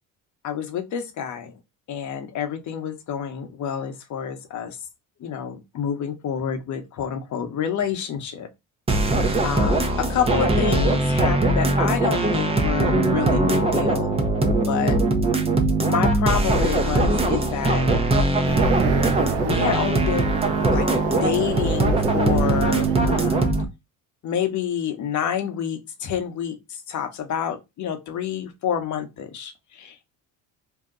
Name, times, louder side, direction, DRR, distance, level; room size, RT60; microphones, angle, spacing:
voice 1, 0.4-1.5 1.9-4.8 5.2-8.5 9.4-14.1 14.7-15.0 15.9-17.8 19.4-20.3 20.6-20.9 21.2-23.5 24.2-26.6 26.9-30.1, left 8 dB, 50° left, 0.9 m, -28 dB
sound 1, 8.9-23.6, right 2 dB, 15° right, 0.6 m, -21 dB
sound 2, 18.4-23.5, right 8 dB, 85° right, 0.5 m, -29 dB
2.8 x 2.2 x 3.7 m
supercardioid pair, 100°, 38 cm